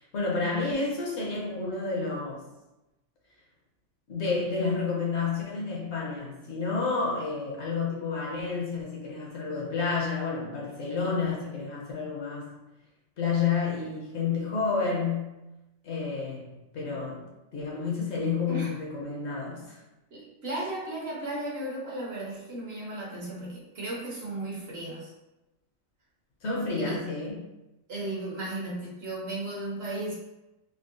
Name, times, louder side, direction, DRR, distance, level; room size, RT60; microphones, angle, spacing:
voice 1, 0.0-2.4 4.1-12.6 13.2-15.3 15.8-17.3 17.5-19.8 26.4-27.4, left 4 dB, 65° left, -3 dB, 0.9 m, -30 dB
voice 2, 20.1-25.1 26.7-27.0 27.9-30.2, right 1 dB, 55° right, -4 dB, 0.9 m, -35 dB
3.6 x 2.1 x 2.5 m, 0.99 s
omnidirectional pair, 1.4 m